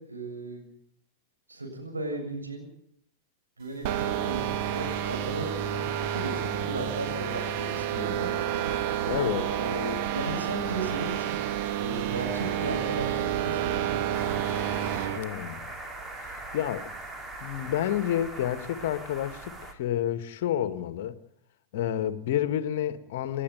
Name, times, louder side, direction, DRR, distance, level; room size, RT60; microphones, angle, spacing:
voice 1, 0.1-0.7 1.5-2.7 3.6-4.4 4.7-5.8 6.1-8.4 9.3-11.4 11.8-13.9, right 2 dB, 80° right, 7.6 m, -35 dB
sound 1, 3.8-15.2, right 10 dB, 45° right, 1.5 m, -30 dB
voice 2, 9.1-9.5 15.1-15.7 16.5-16.9 17.4-21.2 21.7-23.4, left 11 dB, 50° left, 1.7 m, -29 dB
sound 2, 14.1-19.7, right 2 dB, 15° right, 2.9 m, -41 dB
29.5 x 11.0 x 9.3 m
figure-of-eight pair, 95°, 0 cm